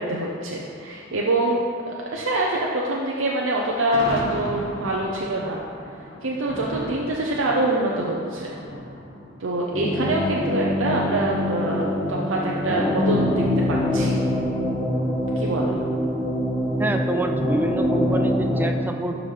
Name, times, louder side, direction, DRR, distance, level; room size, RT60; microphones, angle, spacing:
voice 1, 0.0-1.6 2.1-5.6 6.2-8.6 9.4-14.2 15.4-15.8, right 2 dB, 75° right, -3 dB, 0.7 m, -25 dB
Thunder, 3.5-10.7, left 1 dB, 85° left, 1.3 m, -37 dB
sound 1, 9.7-18.6, left 1 dB, 35° left, 1.9 m, -24 dB
voice 2, 16.8-19.2, right 1 dB, 10° right, 4 dB, 0.4 m, -27 dB
11.5 x 5.0 x 3.3 m, 2.5 s
head